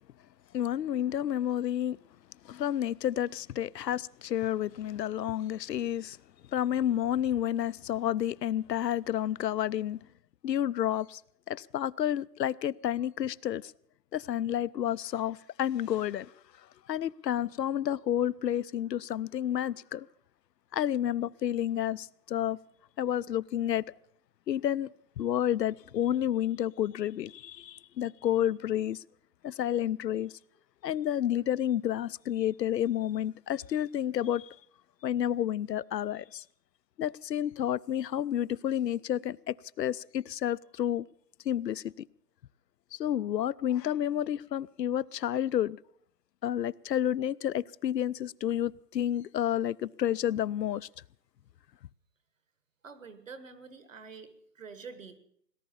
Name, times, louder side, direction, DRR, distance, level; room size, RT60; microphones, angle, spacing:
voice 1, 0.5-2.0 2.4-6.2 6.5-10.0 10.4-11.2 11.5-13.7 14.1-16.3 16.9-20.1 20.7-22.6 23.0-23.8 24.5-24.9 25.2-29.0 29.4-30.3 30.8-34.6 35.0-36.4 37.0-41.1 41.4-41.9 42.9-45.8 46.4-50.9, left 11 dB, 85° left, 0.6 m, -30 dB
voice 2, 52.8-55.2, right 5 dB, 50° right, 1.6 m, -47 dB
18.5 x 11.0 x 7.0 m
hypercardioid pair, 180°, 49 cm